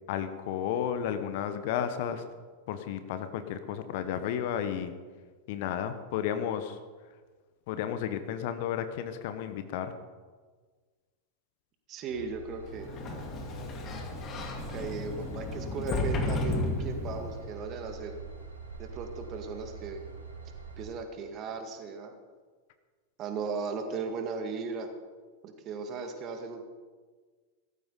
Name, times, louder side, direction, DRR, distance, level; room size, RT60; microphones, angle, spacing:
voice 1, 0.1-2.2 2.7-4.9 5.5-6.8 7.7-9.9, left 9 dB, 50° left, 10 dB, 1.1 m, -32 dB
voice 2, 11.9-12.9 14.7-18.2 18.8-20.0 20.8-22.2 23.2-24.9 25.4-26.6, right 4 dB, 35° right, 5 dB, 2.1 m, -36 dB
Train / Engine, 12.1-20.8, right 5 dB, 75° right, 4.3 m, -45 dB
Sliding door, 12.7-17.5, left 2 dB, 30° left, 2.2 m, -33 dB
17.5 x 14.0 x 4.0 m, 1.5 s
figure-of-eight pair, 90°, 0 cm